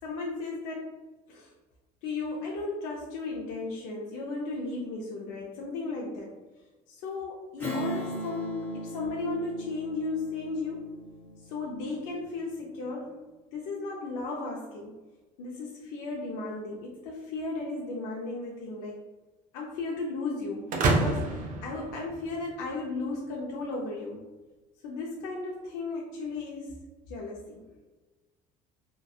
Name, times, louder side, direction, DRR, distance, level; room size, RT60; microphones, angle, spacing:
voice 1, 0.0-1.0 1.3-1.5 2.0-6.3 6.9-10.9 11.4-13.2 13.5-15.0 15.4-19.0 19.5-24.2 24.8-26.8 27.1-27.6, left 3 dB, 75° left, -2 dB, 0.5 m, -35 dB
Strum, 7.6-12.5, equal, 10° left, 0.8 m, -38 dB
sound 1, 20.7-22.6, right 2 dB, 45° right, 0.5 m, -28 dB
2.8 x 2.2 x 2.3 m, 1.2 s
cardioid pair, 130°, 18 cm